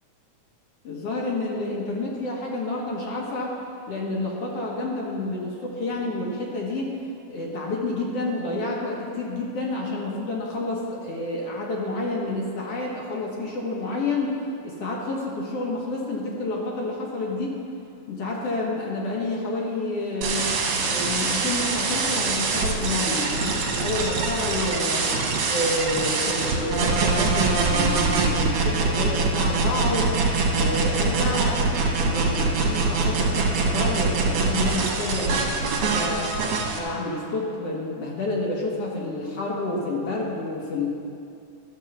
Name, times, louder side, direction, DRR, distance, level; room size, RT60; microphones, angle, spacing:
voice 1, 0.8-3.5 3.9-7.0 7.3-14.4 14.6-17.6 18.1-20.5 20.9-25.1 25.5-30.1 30.5-36.3 36.7-40.9, left 2 dB, 60° left, -3 dB, 1.8 m, -29 dB
sound 1, 20.2-36.8, right 4 dB, 60° right, 1.9 m, -24 dB
12.0 x 4.6 x 7.1 m, 2.5 s
omnidirectional pair, 3.8 m